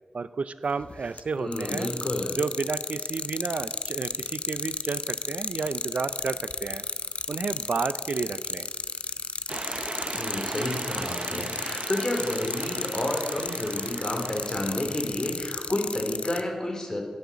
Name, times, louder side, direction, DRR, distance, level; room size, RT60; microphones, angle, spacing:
voice 1, 0.1-1.9 2.3-6.8 7.3-8.7, right 4 dB, 75° right, 14 dB, 0.5 m, -31 dB
sound 1, 0.8-1.2 1.5-16.4, left 4 dB, 65° left, 0.6 m, -33 dB
voice 2, 1.4-2.4 10.1-17.0, left 1 dB, 30° left, 1 dB, 3.0 m, -30 dB
sound 2, 9.5-15.3, right 3 dB, 45° right, 0.9 m, -37 dB
15.5 x 6.6 x 8.3 m, 1.5 s
wide cardioid pair, 95°, 2 cm